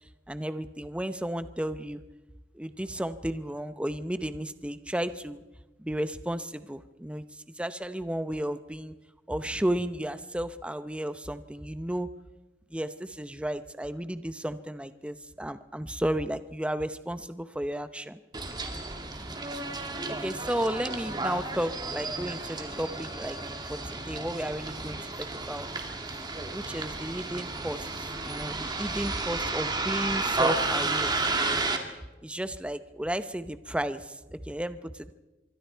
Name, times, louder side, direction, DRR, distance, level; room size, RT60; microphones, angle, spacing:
voice 1, 0.3-2.0 2.5-5.4 5.8-9.0 9.3-12.1 12.7-18.2 20.1-25.7 26.5-31.2 32.2-35.1, right 1 dB, 5° right, 12 dB, 0.7 m, -33 dB
Bus, 18.3-31.8, right 3 dB, 25° right, 2.2 m, -32 dB
25.5 x 23.5 x 4.6 m, 1.1 s
head